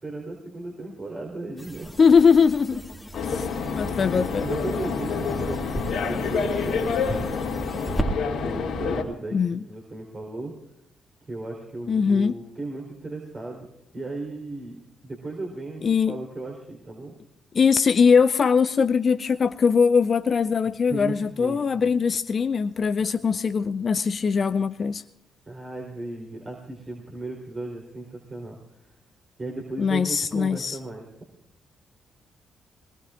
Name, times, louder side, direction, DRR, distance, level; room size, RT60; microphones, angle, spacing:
voice 1, 0.0-2.1 2.7-3.0 4.4-7.1 8.4-10.5 11.2-13.7 13.9-17.1 20.9-21.9 25.5-28.9 29.4-31.0, right 2 dB, 35° right, 3.8 m, -36 dB
sound 1, 1.6-8.1, right 1 dB, 10° left, 2.2 m, -35 dB
voice 2, 2.0-2.8 3.3-4.5 9.3-9.6 11.9-12.4 15.8-16.1 17.5-25.0 29.8-30.8, left 6 dB, 50° left, 0.4 m, -21 dB
sound 2, 3.1-9.0, left 5 dB, 70° left, 2.3 m, -28 dB
23.0 x 19.5 x 2.5 m
hypercardioid pair, 45°, 0 cm